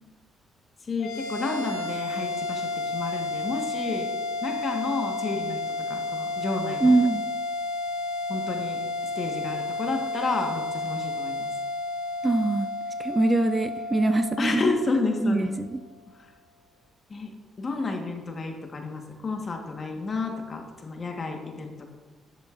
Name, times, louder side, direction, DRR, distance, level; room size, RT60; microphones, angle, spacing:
voice 1, 0.8-4.1 4.4-5.6 5.9-6.9 8.3-8.8 9.1-11.5 14.4-15.5 16.1-16.3 17.1-17.3 17.6-21.9, left 3 dB, 40° left, 3 dB, 1.3 m, -31 dB
sound 1, 1.0-15.6, left 2 dB, 75° left, 0.9 m, -32 dB
voice 2, 6.8-7.2 12.2-12.7 13.0-14.7 15.2-15.8, right 2 dB, 20° right, 10 dB, 0.3 m, -23 dB
10.5 x 7.4 x 2.5 m, 1.3 s
cardioid pair, 90°, 0 cm